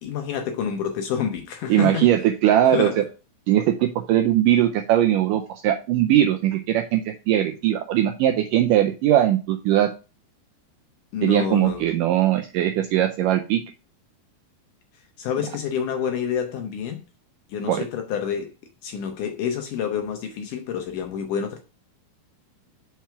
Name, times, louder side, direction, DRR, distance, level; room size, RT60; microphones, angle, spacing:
voice 1, 0.0-2.1 2.7-3.0 11.1-11.9 15.2-17.0 17.5-18.5 18.8-21.6, left 7 dB, 75° left, 2.0 m, -28 dB
voice 2, 1.7-2.9 3.5-9.9 11.2-13.6 17.7-17.8, right 12 dB, 85° right, 1.9 m, -20 dB
5.9 x 4.5 x 5.7 m
omnidirectional pair, 4.4 m